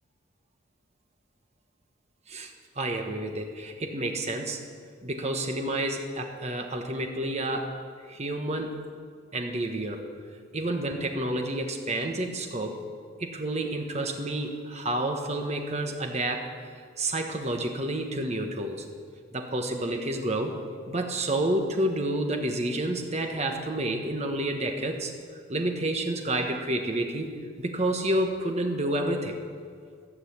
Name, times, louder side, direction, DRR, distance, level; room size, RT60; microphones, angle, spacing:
voice 1, 2.8-4.6 5.0-7.7 8.1-8.8 9.3-10.0 10.5-12.8 13.2-16.5 17.0-18.8 19.3-20.6 20.9-25.1 25.5-27.3 27.6-29.4, right 1 dB, 35° right, 3 dB, 1.3 m, -29 dB
15.0 x 6.8 x 8.3 m, 2.1 s
head